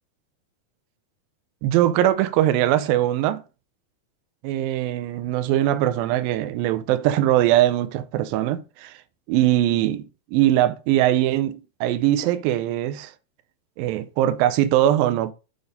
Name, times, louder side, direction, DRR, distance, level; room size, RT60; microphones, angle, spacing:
voice 1, 1.6-3.4 4.4-8.9 9.3-10.0 10.3-13.1 13.8-15.3, right 13 dB, 80° right, 2.2 m, -21 dB
7.0 x 4.1 x 5.2 m
omnidirectional pair, 4.5 m